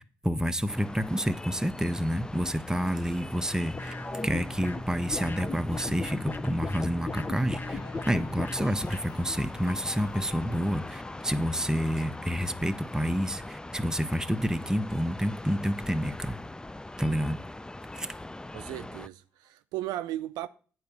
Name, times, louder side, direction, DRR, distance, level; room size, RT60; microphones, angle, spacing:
voice 1, 0.0-3.9 4.2-7.8 8.1-16.4 17.0-17.4 17.9-18.1, equal, 10° right, 0.9 m, -29 dB
sound 1, 0.7-19.1, left 2 dB, 10° left, 0.4 m, -42 dB
sound 2, 3.7-9.1, left 2 dB, 30° left, 0.8 m, -37 dB
sound 3, 7.6-17.2 17.6-18.1, left 4 dB, 65° left, 2.0 m, -50 dB
voice 2, 18.5-20.5, right 14 dB, 80° right, 0.4 m, -36 dB
8.7 x 4.7 x 7.1 m
hypercardioid pair, 40°, 7 cm